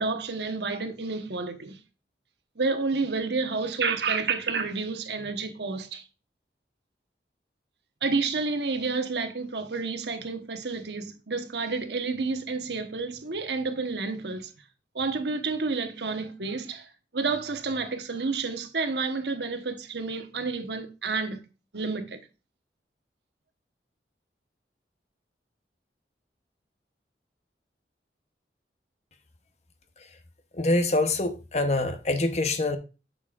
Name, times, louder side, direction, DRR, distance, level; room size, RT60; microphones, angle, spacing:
voice 1, 0.0-1.8 2.6-6.0 8.0-14.5 14.9-21.4 21.7-22.2, right 4 dB, 75° right, 1.1 m, -30 dB
voice 2, 30.5-32.8, left 2 dB, 40° left, 0.9 m, -25 dB
8.4 x 6.4 x 2.4 m
head